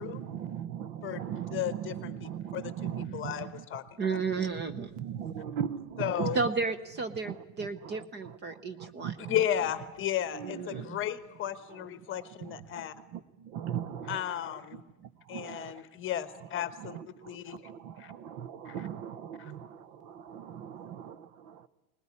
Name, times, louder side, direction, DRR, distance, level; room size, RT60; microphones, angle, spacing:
voice 1, 0.0-3.6 4.1-4.2 5.0-6.4 7.2-7.3 7.8-8.0 8.5-9.4 10.3-10.9 12.4-14.2 15.3-15.8 16.8-21.7, right 9 dB, 60° right, 17 dB, 1.0 m, -39 dB
voice 2, 1.5-3.8 6.0-6.4 9.3-12.9 14.1-14.8 15.3-17.6 18.0-18.1 18.7-18.9 19.4-19.5, left 11 dB, 30° left, 12 dB, 1.2 m, -34 dB
voice 3, 4.0-4.9 6.3-9.3 10.4-11.0 19.4-19.6, right 4 dB, 25° right, 12 dB, 0.8 m, -33 dB
20.5 x 20.0 x 9.8 m, 0.99 s
cardioid pair, 170°, 43 cm